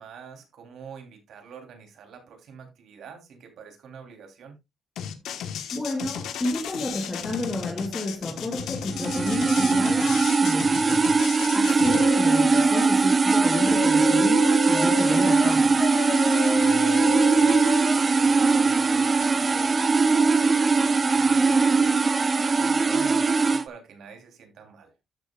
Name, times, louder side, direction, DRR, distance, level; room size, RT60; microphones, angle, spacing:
voice 1, 0.0-4.5 11.6-11.8 16.5-24.9, right 6 dB, 75° right, 3.2 m, -45 dB
sound 1, 5.0-12.0, left 8 dB, 85° left, 1.2 m, -34 dB
voice 2, 5.7-11.1 11.5-15.8, left 1 dB, 20° left, 1.7 m, -31 dB
sound 2, 8.9-23.6, right 4 dB, 30° right, 0.6 m, -20 dB
sound 3, 11.8-12.9 13.2-18.0, left 5 dB, 55° left, 4.8 m, -32 dB
13.0 x 6.9 x 2.4 m
cardioid pair, 105°, 0 cm